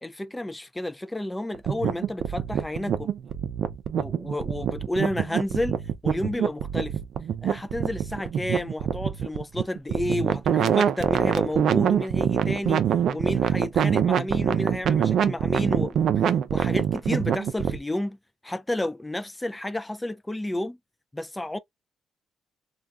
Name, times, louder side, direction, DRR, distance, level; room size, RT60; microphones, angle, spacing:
voice 1, 0.0-3.1 3.9-7.0 7.4-12.8 13.1-16.3 16.5-18.2 18.4-20.8 21.1-21.6, left 1 dB, 10° left, 0.4 m, -31 dB
sound 1, 1.5-17.8, right 9 dB, 70° right, 0.4 m, -25 dB
3.3 x 2.2 x 2.3 m
cardioid pair, 90°, 0 cm